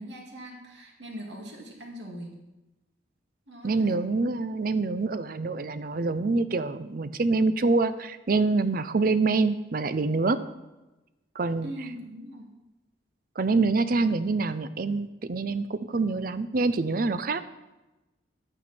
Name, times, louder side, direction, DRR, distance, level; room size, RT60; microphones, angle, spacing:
voice 1, 0.0-2.4 3.5-4.0 11.6-12.5, equal, 70° right, 0 dB, 2.2 m, -41 dB
voice 2, 3.6-10.4 11.4-11.7 13.4-17.4, right 3 dB, 50° right, 13 dB, 0.5 m, -26 dB
11.5 x 8.9 x 4.3 m, 1.0 s
head